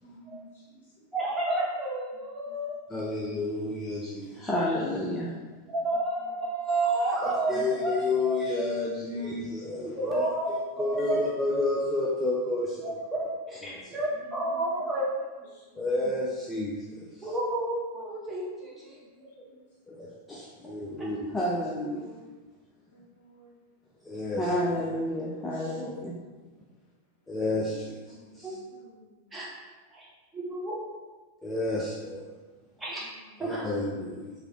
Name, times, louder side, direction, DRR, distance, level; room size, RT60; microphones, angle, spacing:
voice 1, 0.0-1.0 9.1-9.2 9.5-9.8 14.2-15.0 15.4-15.9 18.6-19.6 25.5-25.8, left 1 dB, 50° left, -6 dB, 1.1 m, -53 dB
voice 2, 1.1-3.2 5.7-8.4 10.0-10.5 10.8-11.2 12.8-15.1 17.2-19.3 25.8-25.9 28.4-28.5 29.3-29.5 29.9-30.1 30.3-30.8 32.8-33.0 33.4-33.7, right 2 dB, 10° right, -7 dB, 0.9 m, -31 dB
voice 3, 2.9-5.3 7.2-12.9 13.6-13.9 15.8-17.0 19.9-22.1 24.0-26.1 27.3-28.0 28.3-28.5 31.4-32.3 33.4-34.3, left 2 dB, 10° left, -5 dB, 0.4 m, -30 dB
voice 4, 9.1-10.3 14.1-14.5 17.9-18.0 21.8-22.4 22.9-23.6 24.8-25.4 28.1-29.3 33.0-34.2, left 2 dB, 75° left, -7 dB, 0.7 m, -55 dB
3.0 x 2.6 x 2.8 m, 1.3 s
figure-of-eight pair, 90°, 0 cm